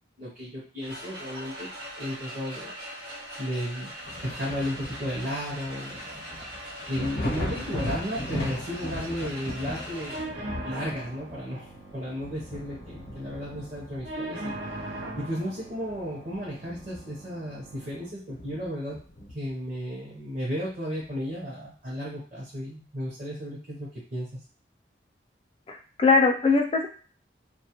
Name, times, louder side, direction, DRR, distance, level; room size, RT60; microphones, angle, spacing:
voice 1, 0.2-1.7 2.0-2.7 3.4-3.9 4.2-6.2 6.9-10.1 10.6-14.5 15.2-19.0 19.3-24.3, equal, 45° right, -7 dB, 0.6 m, -34 dB
sound 1, 0.8-10.2, equal, 65° right, 1.0 m, -41 dB
Thunder, 4.0-15.4 15.8-17.3 17.6-17.7 18.3-19.6 21.0-21.1, left 1 dB, 70° left, 0.7 m, -38 dB
sound 2, 10.1-18.1, right 2 dB, 90° right, 0.5 m, -40 dB
voice 2, 25.7-26.9, left 4 dB, 30° left, 2 dB, 0.3 m, -21 dB
2.3 x 2.1 x 2.8 m, 0.39 s
head